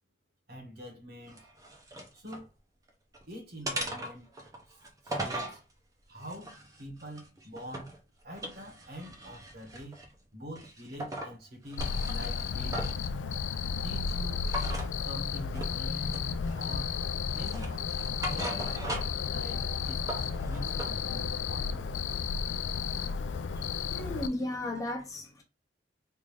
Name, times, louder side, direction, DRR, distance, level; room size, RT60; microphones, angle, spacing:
voice 1, 0.5-1.5 2.1-2.5 3.3-4.3 4.7-5.6 6.1-8.0 8.2-10.0 10.3-12.8 13.8-14.4 15.0-17.0 17.3-17.9 18.2-18.9 19.2-21.9, equal, 55° right, 1.3 m, -44 dB
sound 1, 1.3-2.5 2.9-3.2 3.7-5.6 6.2-8.0 8.3-10.1 10.6-11.3 11.7-13.1 14.5-14.9 15.6-15.8 16.1-16.8 17.3-19.3 19.6-20.9, right 1 dB, 20° right, 0.7 m, -39 dB
Cricket, 11.8-24.3, left 5 dB, 75° left, 0.4 m, -33 dB
voice 2, 23.6-25.4, left 1 dB, 20° left, 0.8 m, -35 dB
3.5 x 2.6 x 3.1 m
head